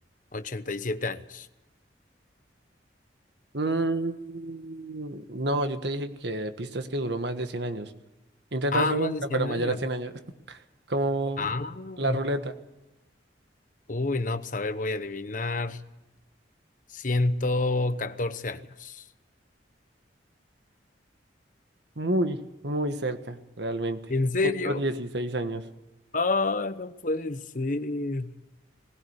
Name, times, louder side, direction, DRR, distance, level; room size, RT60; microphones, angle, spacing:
voice 1, 0.3-1.5 8.7-9.8 11.4-12.2 13.9-15.8 16.9-19.0 24.1-24.8 26.1-28.3, left 2 dB, 45° left, 0.9 m, -29 dB
voice 2, 3.5-7.9 8.5-10.1 10.5-10.6 10.9-11.5 12.0-12.5 22.0-24.0 24.4-25.6, right 1 dB, 65° right, 1.5 m, -29 dB
19.5 x 17.0 x 8.1 m
head